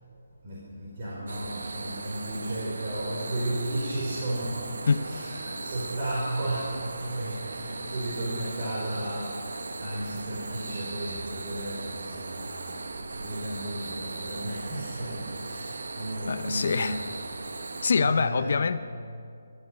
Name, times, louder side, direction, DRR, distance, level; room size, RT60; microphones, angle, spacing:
voice 1, 0.4-17.0 18.0-18.7, right 1 dB, 35° right, -6 dB, 5.0 m, -34 dB
sound 1, 1.3-17.9, right 3 dB, 90° right, 1.2 m, -38 dB
voice 2, 16.3-17.0 17.8-18.8, left 5 dB, 55° left, 11 dB, 0.7 m, -25 dB
23.0 x 14.0 x 9.8 m, 2.4 s
hypercardioid pair, 175°, 0 cm